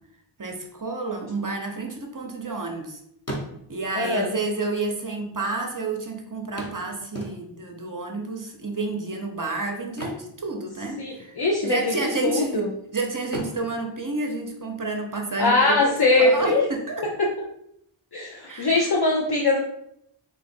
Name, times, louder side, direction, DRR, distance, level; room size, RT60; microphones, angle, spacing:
voice 1, 0.4-3.0 3.7-12.7 12.9-17.0 18.4-19.0, right 3 dB, 40° right, 2 dB, 0.7 m, -30 dB
sound 1, 1.9-2.8 3.1-4.0 4.9-5.0 5.2-5.3 6.6-7.8 9.8-11.1 11.4-11.6 12.1-12.8 13.2-15.0 17.0-17.1 17.5-17.6, right 1 dB, 30° left, 1.1 m, -37 dB
voice 2, 4.0-4.3 11.0-11.9 12.2-12.7 15.4-16.7 17.2-17.3 18.1-19.6, left 2 dB, 55° left, -1 dB, 0.6 m, -21 dB
3.9 x 2.5 x 4.2 m, 0.76 s
wide cardioid pair, 65°, 48 cm